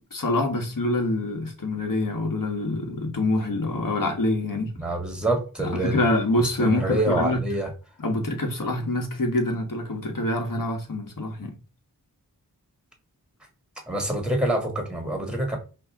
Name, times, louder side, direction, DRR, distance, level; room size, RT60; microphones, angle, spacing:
voice 1, 0.1-4.8 5.6-7.4 8.0-11.5, left 1 dB, 60° left, 1.5 m, -25 dB
voice 2, 4.8-6.1 6.6-7.7 13.9-15.6, right 1 dB, ahead, 1.8 m, -26 dB
5.1 x 2.9 x 3.5 m
wide cardioid pair, 45°, 38 cm